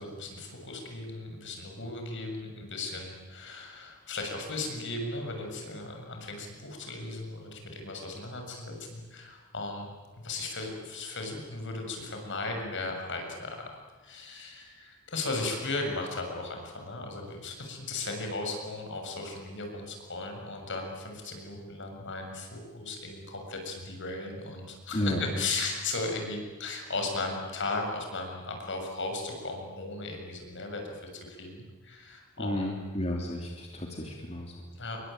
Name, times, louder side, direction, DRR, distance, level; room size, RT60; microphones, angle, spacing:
voice 1, 0.0-9.9 10.2-13.7 14.0-32.7 34.7-35.0, left 3 dB, 60° left, 3 dB, 7.1 m, -36 dB
voice 2, 24.9-25.5 32.4-34.7, equal, 30° left, 0 dB, 3.1 m, -32 dB
27.5 x 23.0 x 9.2 m, 1.4 s
head